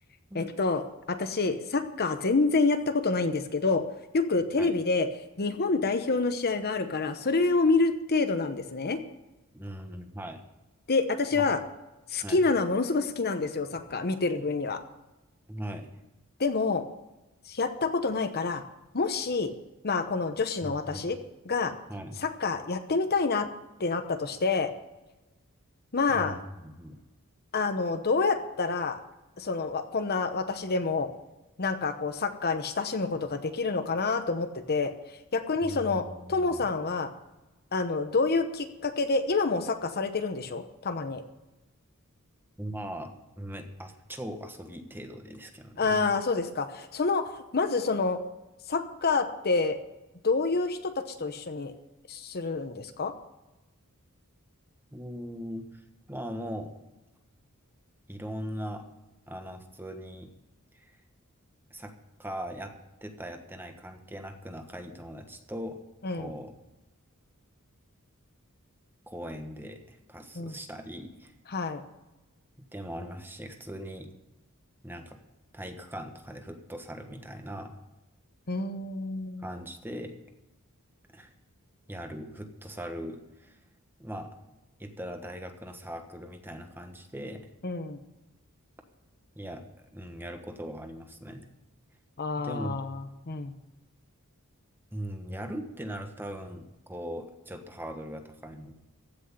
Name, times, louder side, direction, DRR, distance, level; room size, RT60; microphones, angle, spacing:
voice 1, 0.3-0.8 1.1-3.8 4.1-5.1 5.4-9.0 10.9-11.6 12.1-14.8 16.4-16.8 17.5-18.6 18.9-19.5 19.8-21.2 21.5-21.7 22.2-23.5 23.8-24.7 25.9-26.3 27.5-29.0 29.4-31.1 31.6-34.9 35.3-36.0 36.3-37.1 37.7-41.2 45.8-48.2 48.7-49.8 50.2-51.7 52.1-53.1 66.0-66.3 70.3-70.6 71.5-71.8 78.5-79.4 87.6-88.0 92.2-93.5, left 3 dB, 45° left, 9 dB, 0.9 m, -27 dB
voice 2, 9.5-10.4 11.3-11.4 12.2-12.4 15.5-15.9 20.6-21.1 21.9-22.2 26.1-27.0 35.6-36.7 42.6-46.1 54.9-55.8 56.1-56.7 58.1-58.8 59.3-60.3 60.7-61.0 61.7-61.9 62.2-62.7 63.0-65.8 66.1-66.5 69.1-71.3 72.6-74.1 74.8-75.2 75.5-77.7 79.4-80.1 81.1-81.3 81.9-83.6 84.0-84.3 84.8-87.5 89.3-89.6 89.9-91.5 92.4-92.8 94.9-98.7, equal, 10° right, 5 dB, 1.3 m, -40 dB
15.5 x 6.3 x 9.7 m, 1.0 s
head